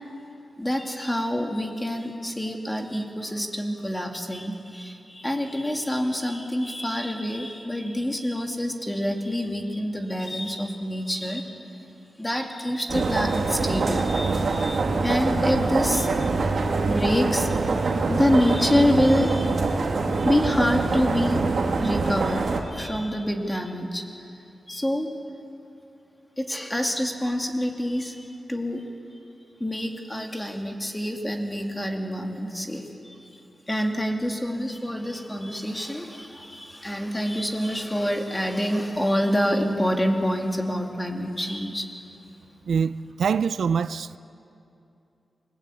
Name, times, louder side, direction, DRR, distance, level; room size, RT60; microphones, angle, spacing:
voice 1, 0.6-11.6 12.2-16.3 16.8-21.4 21.7-24.3 24.7-25.1 26.4-28.8 29.6-41.9, equal, 10° left, 2.5 m, -27 dB
sound 1, 12.9-22.6, right 3 dB, 60° right, 2.6 m, -24 dB
voice 2, 42.7-44.2, right 6 dB, 75° right, 0.5 m, -24 dB
28.5 x 21.0 x 8.5 m
wide cardioid pair, 130°, 0 cm